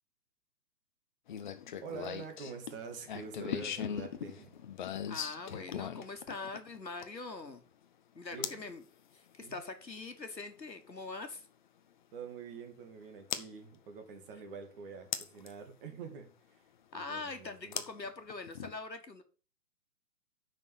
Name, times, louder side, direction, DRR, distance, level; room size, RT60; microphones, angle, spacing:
sound 1, 1.3-7.3 8.4-8.7 10.6-10.7 13.3-13.5 15.1-15.5 17.7-18.7, left 9 dB, 30° left, 0.7 m, -39 dB
voice 1, 1.8-4.6 8.3-8.6 9.4-9.6 12.1-16.6 16.9-17.8, right 5 dB, 35° right, 5 dB, 2.3 m, -46 dB
voice 2, 5.1-7.6 8.1-8.8 9.1-11.4 16.9-19.2, left 3 dB, 85° left, 7 dB, 1.7 m, -43 dB
6.9 x 6.1 x 7.5 m, 0.37 s
figure-of-eight pair, 125°, 49 cm